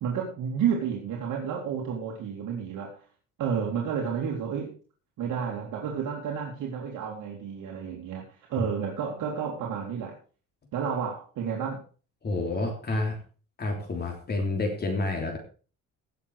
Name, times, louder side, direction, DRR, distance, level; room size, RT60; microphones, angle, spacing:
voice 1, 0.0-3.0 3.4-4.7 5.2-10.1 10.7-11.8, right 7 dB, 75° right, -1 dB, 2.6 m, -31 dB
voice 2, 12.2-13.2 13.6-15.4, left 2 dB, 30° left, 2 dB, 3.3 m, -29 dB
17.0 x 6.8 x 4.8 m, 0.38 s
cardioid pair, 145°, 31 cm